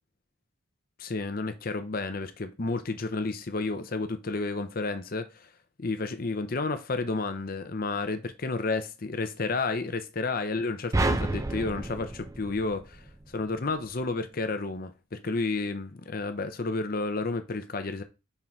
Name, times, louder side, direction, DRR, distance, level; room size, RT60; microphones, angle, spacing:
voice 1, 1.0-5.5 5.8-13.0 13.3-18.0, left 3 dB, 45° left, 0.7 m, -31 dB
sound 1, 10.9-13.3, right 2 dB, 15° right, 0.4 m, -30 dB
5.6 x 3.7 x 4.4 m
head